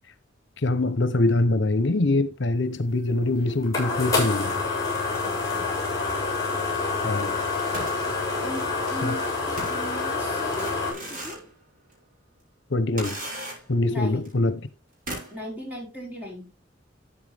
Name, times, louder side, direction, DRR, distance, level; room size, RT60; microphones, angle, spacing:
voice 1, 0.6-4.6 7.0-7.4 9.0-9.1 12.7-13.2 13.7-14.6, left 2 dB, 65° left, 0.8 m, -24 dB
sound 1, 3.0-10.9, left 3 dB, 15° left, 6.6 m, -27 dB
voice 2, 5.2-5.8 8.4-11.5 13.9-14.3 15.3-16.5, left 1 dB, 10° right, 5.0 m, -38 dB
sound 2, 7.4-9.0 9.6-11.5 11.9-12.0 13.0-13.9 14.2-14.3 15.1-15.5, right 1 dB, 45° right, 6.5 m, -37 dB
13.0 x 8.3 x 3.4 m
head